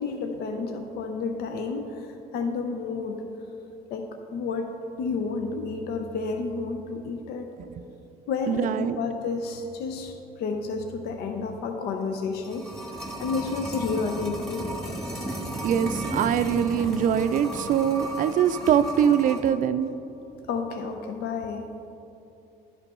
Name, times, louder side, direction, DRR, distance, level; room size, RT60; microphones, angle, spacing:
voice 1, 0.0-3.2 3.9-7.5 8.3-12.7 13.2-14.8 20.5-21.7, left 4 dB, 70° left, 5 dB, 0.6 m, -31 dB
voice 2, 8.5-9.0 15.6-19.9, right 8 dB, 50° right, 11 dB, 0.4 m, -23 dB
sound 1, 12.1-19.5 19.8-19.9, right 1 dB, ahead, 1.5 m, -34 dB
11.5 x 5.2 x 4.3 m, 2.8 s
cardioid pair, 110°, 17 cm